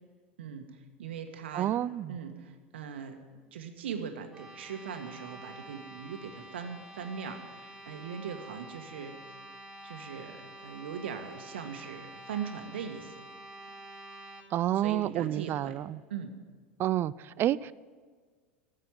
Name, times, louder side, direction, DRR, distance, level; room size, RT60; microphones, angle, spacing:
voice 1, 0.4-1.7 2.1-3.2 3.5-9.2 9.8-13.1 14.8-15.7 16.1-16.3, right 7 dB, 70° right, 6 dB, 1.4 m, -40 dB
voice 2, 1.5-2.1 14.5-16.0 16.8-17.7, right 12 dB, 35° right, 20 dB, 0.4 m, -29 dB
sound 1, 4.3-14.4, right 1 dB, 10° right, 3.8 m, -48 dB
14.0 x 7.4 x 9.4 m, 1.6 s
figure-of-eight pair, 80°, 6 cm